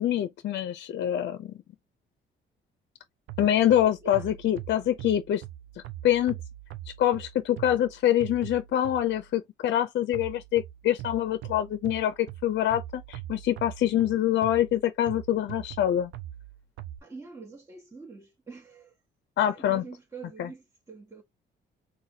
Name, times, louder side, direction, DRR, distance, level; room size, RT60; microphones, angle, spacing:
voice 1, 0.0-1.5 3.4-5.4 6.0-6.4 7.0-16.1 19.4-19.8 20.4-20.5, left 11 dB, 65° left, 0.5 m, -25 dB
sound 1, 3.3-9.3 10.1-17.0, right 13 dB, 85° right, 0.6 m, -42 dB
voice 2, 17.0-19.0 19.5-21.2, right 4 dB, 15° right, 1.1 m, -45 dB
4.1 x 2.6 x 2.7 m
cardioid pair, 90°, 20 cm